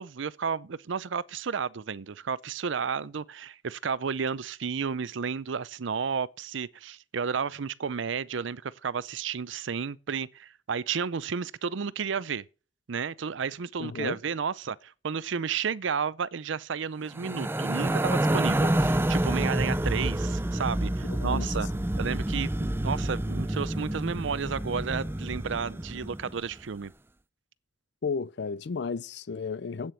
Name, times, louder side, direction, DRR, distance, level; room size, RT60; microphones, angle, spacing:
voice 1, 0.0-12.4 12.9-21.7 22.0-26.9, right 6 dB, 75° right, 0.5 m, -32 dB
voice 2, 13.8-14.2 21.0-21.5 28.0-29.9, left 5 dB, 60° left, 0.4 m, -33 dB
sound 1, 17.1-26.4, right 1 dB, 10° right, 0.5 m, -28 dB
8.7 x 7.5 x 8.0 m
head